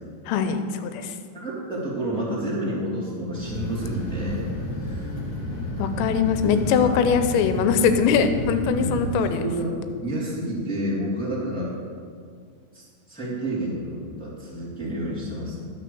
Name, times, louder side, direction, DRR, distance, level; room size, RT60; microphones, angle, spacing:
voice 1, 0.3-1.2 5.8-9.4, left 6 dB, 90° left, 9 dB, 2.9 m, -22 dB
voice 2, 1.3-4.4 4.8-5.1 6.5-6.9 8.7-8.9 9.3-11.8 12.7-15.7, right 1 dB, ahead, -8 dB, 1.6 m, -30 dB
sound 1, 3.3-9.1, left 1 dB, 55° left, 1.4 m, -31 dB
11.0 x 6.3 x 6.9 m, 2.1 s
omnidirectional pair, 5.0 m